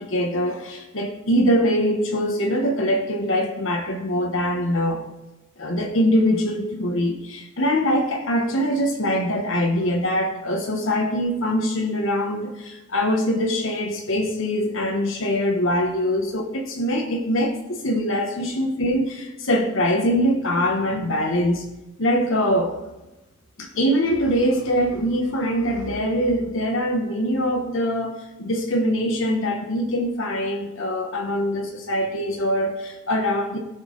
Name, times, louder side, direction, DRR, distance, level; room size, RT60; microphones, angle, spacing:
voice 1, 0.0-5.0 5.6-21.6 22.0-22.7 23.6-33.6, equal, 70° left, 3 dB, 1.3 m, -23 dB
16.0 x 5.6 x 4.0 m, 1.0 s
head